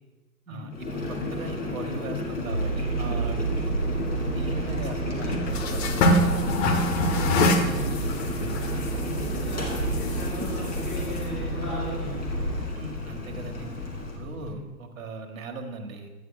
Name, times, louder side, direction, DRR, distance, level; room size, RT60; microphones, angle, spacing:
voice 1, 0.5-3.8 4.3-6.2 7.0-7.8 8.2-8.6 12.7-13.7 14.1-16.1, right 3 dB, 60° right, 5 dB, 1.3 m, -39 dB
Boiling, 0.7-14.2, left 2 dB, 20° left, 1.9 m, -33 dB
sound 1, 2.5-12.7, right 3 dB, 75° left, 2.7 m, -31 dB
sound 2, 3.3-14.5, left 1 dB, 45° left, 1.1 m, -29 dB
voice 2, 6.8-7.9 8.7-8.9 9.2-12.6 13.5-13.7 14.4-14.6, equal, ahead, -9 dB, 2.5 m, -37 dB
9.5 x 9.2 x 2.3 m, 1.2 s
figure-of-eight pair, 110°, 45 cm